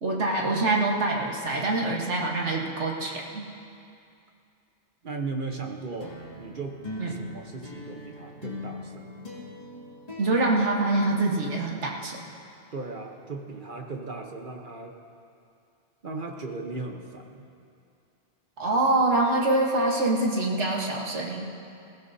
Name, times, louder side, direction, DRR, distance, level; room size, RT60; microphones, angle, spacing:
voice 1, 0.0-3.4 7.0-7.1 10.2-12.2 18.6-21.5, right 2 dB, 85° right, -1 dB, 1.7 m, -25 dB
voice 2, 5.0-6.8 7.1-9.2 12.7-14.9 16.0-17.4, right 3 dB, 50° right, 2 dB, 1.1 m, -37 dB
sound 1, 6.0-11.6, left 1 dB, 35° left, 2.6 m, -41 dB
20.5 x 15.5 x 2.8 m, 2.4 s
omnidirectional pair, 1.2 m